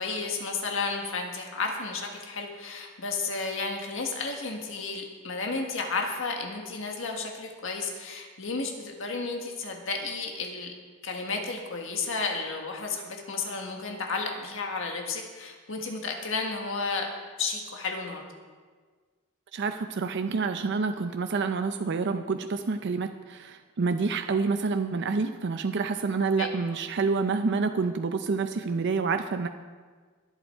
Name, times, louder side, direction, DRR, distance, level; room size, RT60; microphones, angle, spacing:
voice 1, 0.0-10.7 11.0-17.1 17.4-18.2 26.4-26.5, left 4 dB, 65° left, 2 dB, 1.7 m, -32 dB
voice 2, 19.5-29.5, right 4 dB, 55° right, 7 dB, 0.5 m, -28 dB
22.0 x 8.0 x 4.5 m, 1.5 s
head